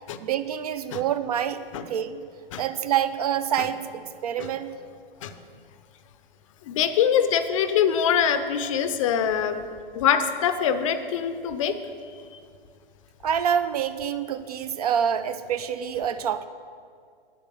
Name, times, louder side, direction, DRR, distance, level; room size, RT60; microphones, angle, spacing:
voice 1, 0.2-1.6 1.9-2.2 2.6-3.8 4.2-4.7 13.2-16.5, right 9 dB, 40° right, 12 dB, 0.5 m, -26 dB
voice 2, 6.7-9.7 9.9-11.7, left 8 dB, 35° left, 10 dB, 0.6 m, -23 dB
9.4 x 7.8 x 6.1 m, 2.2 s
figure-of-eight pair, 120°, 29 cm